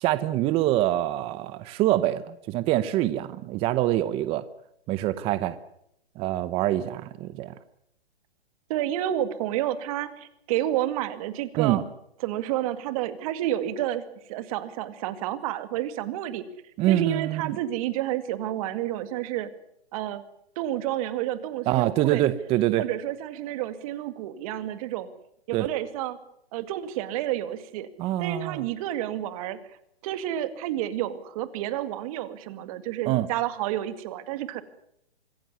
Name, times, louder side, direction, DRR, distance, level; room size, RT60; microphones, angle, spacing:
voice 1, 0.0-4.4 4.9-5.6 6.2-7.5 11.6-11.8 16.8-17.6 21.7-22.8 25.5-25.6 28.0-28.6 33.1-33.3, right 14 dB, 20° right, 15 dB, 0.8 m, -25 dB
voice 2, 8.7-11.8 12.2-14.0 14.3-16.4 16.9-19.5 19.9-20.2 20.6-22.3 22.8-25.1 25.5-26.2 26.5-27.9 28.2-29.6 30.0-34.6, right 12 dB, 35° right, 12 dB, 2.2 m, -30 dB
25.5 x 15.0 x 9.7 m, 0.73 s
hypercardioid pair, 145°, 31 cm